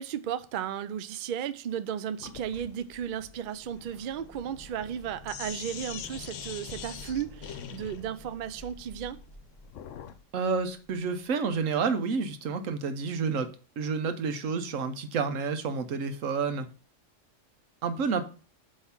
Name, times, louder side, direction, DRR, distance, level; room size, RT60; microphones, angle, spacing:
voice 1, 0.0-9.2, right 9 dB, 60° right, 0.5 m, -34 dB
Sink (filling or washing), 2.2-10.2, left 9 dB, 75° left, 1.0 m, -44 dB
sound 1, 3.4-11.2 11.5-11.6, left 1 dB, 20° left, 1.8 m, -50 dB
voice 2, 10.3-13.5 13.8-16.7 17.8-18.2, right 5 dB, 90° right, 1.2 m, -29 dB
8.0 x 3.2 x 5.7 m
omnidirectional pair, 1.3 m